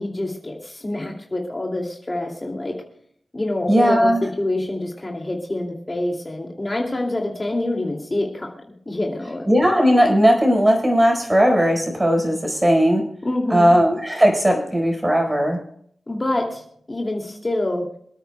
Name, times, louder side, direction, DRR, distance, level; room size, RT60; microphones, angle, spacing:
voice 1, 0.0-2.8 3.3-8.5 8.9-9.5 13.2-13.7 16.1-17.9, left 1 dB, 30° left, 0 dB, 2.5 m, -26 dB
voice 2, 3.7-4.2 9.5-13.0 13.5-15.6, equal, 20° right, 3 dB, 4.8 m, -17 dB
27.0 x 9.2 x 2.2 m, 0.66 s
cardioid pair, 65°, 0 cm